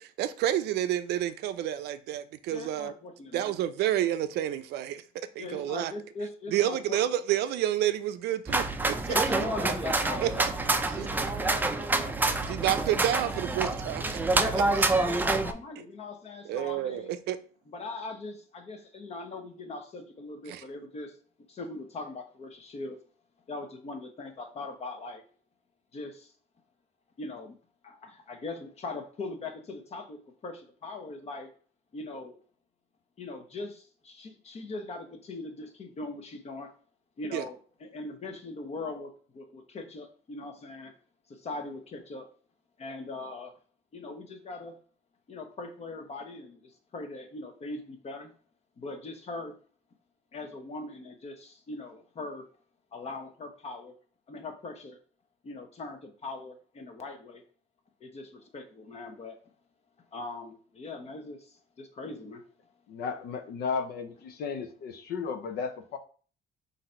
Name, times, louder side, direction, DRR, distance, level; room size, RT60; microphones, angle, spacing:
voice 1, 0.0-2.9 3.3-5.0 5.4-5.9 6.5-9.1 10.2-10.5 10.9-11.1 12.5-14.2 14.5-14.8 16.5-17.4 20.5-20.6 37.3-37.4, right 12 dB, 75° right, 0.5 m, -29 dB
voice 2, 2.5-3.5 5.4-7.0 9.1-13.0 14.3-17.1 17.7-21.2 21.5-23.0 23.5-25.2 25.9-26.3 27.2-27.6 27.8-31.5 31.9-32.4 33.2-36.7 37.2-40.9 41.3-42.3 42.8-43.5 43.9-44.7 45.3-48.3 48.8-49.6 50.3-52.5 52.9-53.9 54.3-55.0 55.4-57.4 58.0-59.5 60.1-62.4, left 3 dB, 40° left, 0.9 m, -41 dB
sound 1, 8.5-15.5, right 2 dB, 10° right, 0.4 m, -27 dB
voice 3, 62.9-66.0, left 5 dB, 70° left, 0.7 m, -34 dB
3.9 x 2.7 x 4.3 m
cardioid pair, 110°, 17 cm